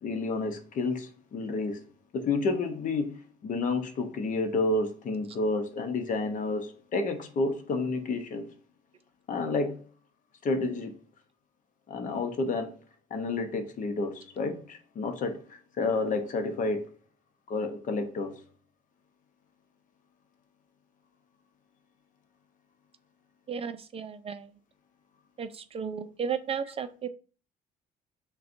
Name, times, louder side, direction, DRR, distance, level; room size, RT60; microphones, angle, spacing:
voice 1, 0.0-1.8 2.1-8.5 9.3-9.8 10.4-10.9 11.9-12.8 13.1-17.0 17.5-18.4, left 3 dB, 50° left, 0.8 m, -30 dB
voice 2, 23.5-24.5 25.4-27.1, right 7 dB, 35° right, 0.4 m, -34 dB
6.4 x 2.3 x 2.6 m
cardioid pair, 110°, 17 cm